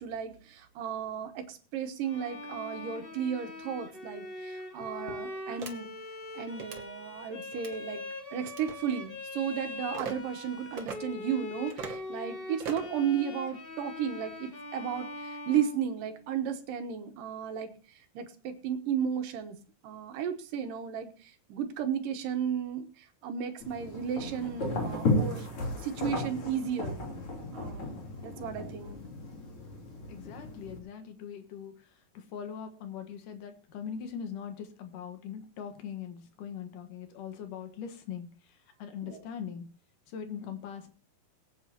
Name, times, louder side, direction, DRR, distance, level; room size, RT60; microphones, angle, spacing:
voice 1, 0.0-5.9 6.3-8.0 8.3-17.7 18.1-19.6 19.8-25.5 25.8-27.1 27.5-27.9 28.2-29.0 39.0-39.2, right 8 dB, 80° right, 8 dB, 2.7 m, -34 dB
Bowed string instrument, 2.0-16.3, left 2 dB, 20° left, 1.5 m, -42 dB
sound 1, 5.6-5.7 6.5-6.8 7.5-7.8 8.4-8.8 9.9-10.1 10.8-11.0 11.7-12.0 12.6-12.9, right 5 dB, 55° right, 1.4 m, -39 dB
sound 2, 23.6-30.8, left 2 dB, 40° left, 3.9 m, -34 dB
voice 2, 30.1-31.8 32.1-38.3 38.8-39.7 40.1-40.9, left 7 dB, 75° left, 7 dB, 2.9 m, -41 dB
22.5 x 8.8 x 2.8 m, 0.38 s
omnidirectional pair, 4.0 m